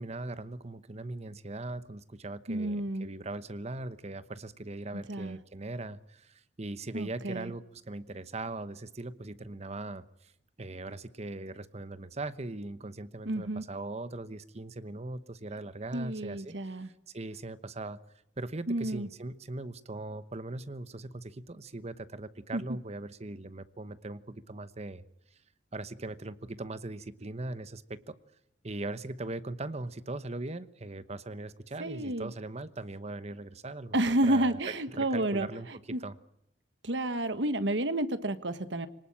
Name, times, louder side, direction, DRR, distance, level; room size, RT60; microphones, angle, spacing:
voice 1, 0.0-10.3 10.6-16.8 17.1-18.0 18.4-25.0 25.7-28.2 28.6-34.0 34.2-34.6 34.9-36.2, right 2 dB, 35° right, 14 dB, 1.0 m, -40 dB
voice 2, 2.5-3.1 5.1-5.4 6.9-7.5 13.2-13.6 15.9-16.9 18.7-19.1 22.5-22.6 31.8-32.3 33.9-35.5 35.9-36.0 36.8-38.9, right 1 dB, 75° right, 11 dB, 1.5 m, -30 dB
24.5 x 19.0 x 8.8 m, 0.78 s
head